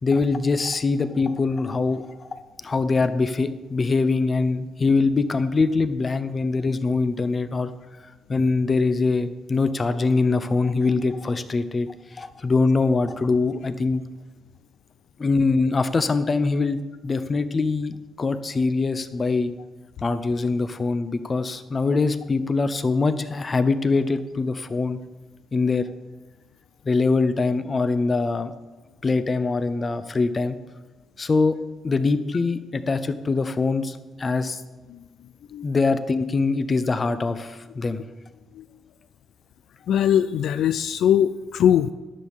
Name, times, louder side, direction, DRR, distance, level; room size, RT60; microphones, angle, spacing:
voice 1, 0.0-7.7 8.3-14.0 15.2-19.5 20.0-25.0 25.5-25.9 26.8-28.5 29.0-30.6 31.2-31.6 31.8-34.6 35.6-38.0, left 3 dB, 30° left, 12 dB, 0.8 m, -23 dB
voice 2, 39.9-41.9, left 9 dB, 75° left, 12 dB, 0.3 m, -21 dB
10.5 x 6.4 x 7.4 m, 1.2 s
cardioid pair, 90°, 0 cm